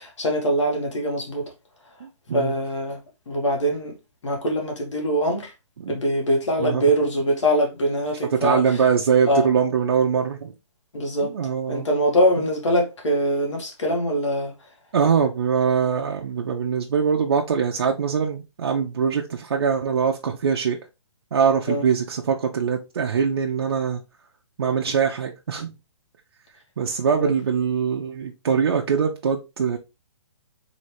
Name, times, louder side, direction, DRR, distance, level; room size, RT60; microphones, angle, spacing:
voice 1, 0.0-1.5 2.3-3.0 3.3-4.0 4.2-5.5 5.9-8.6 9.3-9.5 10.9-11.3 11.7-14.5 21.7-21.8 27.2-27.3, equal, 80° left, 2.1 m, -23 dB
voice 2, 2.0-2.6 5.8-6.0 6.6-6.8 8.3-10.5 11.2-11.9 14.9-20.8 21.3-24.0 24.6-25.7 26.8-29.8, right 6 dB, 55° right, 0.7 m, -22 dB
4.0 x 3.2 x 3.4 m
hypercardioid pair, 170°, 15 cm